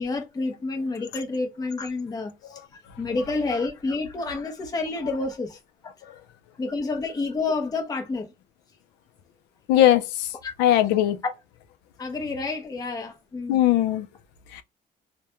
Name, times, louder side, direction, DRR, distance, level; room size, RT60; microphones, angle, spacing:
voice 1, 0.0-2.6 3.0-5.6 6.6-8.3 10.4-10.5 12.0-13.6, left 3 dB, 20° left, 0.7 m, -29 dB
voice 2, 9.7-10.3 10.6-11.2 13.5-14.1 14.5-14.6, left 12 dB, 85° left, 0.4 m, -19 dB
2.3 x 2.1 x 2.8 m
cardioid pair, 110°, 17 cm